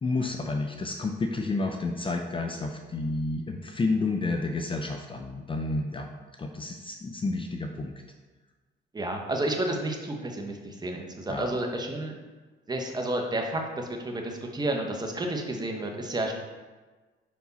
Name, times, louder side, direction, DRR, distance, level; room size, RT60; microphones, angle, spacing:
voice 1, 0.0-6.1 6.4-7.9 11.3-11.5, left 3 dB, 25° left, 4 dB, 0.5 m, -30 dB
voice 2, 8.9-12.2 12.7-16.3, right 1 dB, 20° right, 2 dB, 1.0 m, -31 dB
5.3 x 4.7 x 4.1 m, 1.3 s
cardioid pair, 90°, 20 cm